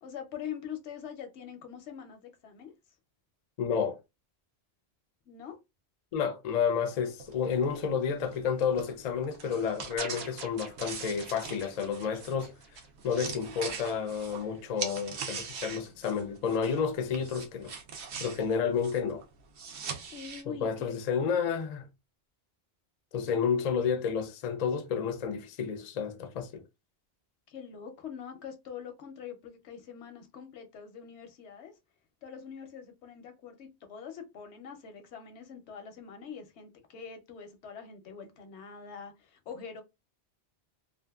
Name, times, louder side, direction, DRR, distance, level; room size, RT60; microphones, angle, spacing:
voice 1, 0.0-2.7 5.3-5.6 20.1-20.9 27.5-31.7 32.2-39.8, left 7 dB, 90° left, 1.0 m, -44 dB
voice 2, 3.6-4.0 6.1-12.5 13.0-17.7 18.2-19.2 20.5-21.9 23.1-26.6, left 6 dB, 50° left, 0.5 m, -30 dB
sound 1, 7.2-16.9 17.1-20.4, right 5 dB, 90° right, 1.0 m, -42 dB
sound 2, 10.0-13.3, right 5 dB, 60° right, 0.8 m, -44 dB
2.6 x 2.5 x 2.2 m
omnidirectional pair, 1.1 m